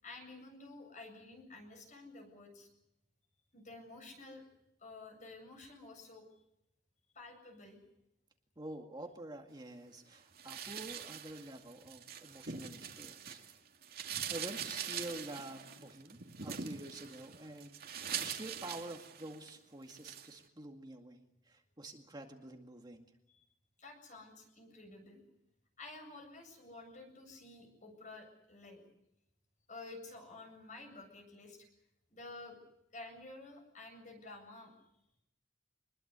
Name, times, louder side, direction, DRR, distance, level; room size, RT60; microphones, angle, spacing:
voice 1, 0.0-2.7 3.5-4.4 4.8-6.3 7.1-7.8 23.3-23.4 23.8-25.2 25.8-28.8 29.7-31.7 32.1-32.6 32.9-34.7, left 2 dB, 45° left, 5 dB, 7.9 m, -51 dB
voice 2, 8.6-13.4 14.3-23.1, right 1 dB, 25° right, 3 dB, 2.1 m, -48 dB
sound 1, 10.4-13.5 13.8-19.5 19.9-20.3, right 7 dB, 55° right, 2.5 m, -43 dB
25.5 x 21.5 x 8.2 m, 0.84 s
head